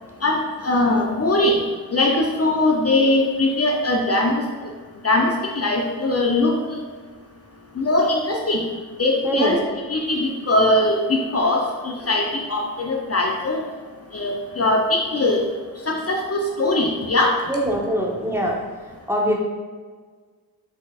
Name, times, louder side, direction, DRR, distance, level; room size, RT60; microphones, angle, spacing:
voice 1, 0.2-1.6 1.9-4.4 5.0-6.8 7.8-8.6 9.0-9.6 9.9-13.6 14.1-15.4 15.9-17.3, left 2 dB, 35° left, 0 dB, 0.6 m, -21 dB
voice 2, 9.2-9.6 17.5-18.5 19.1-19.4, right 1 dB, 5° right, -1 dB, 0.8 m, -22 dB
4.2 x 4.2 x 2.4 m, 1.5 s
cardioid pair, 50°, 40 cm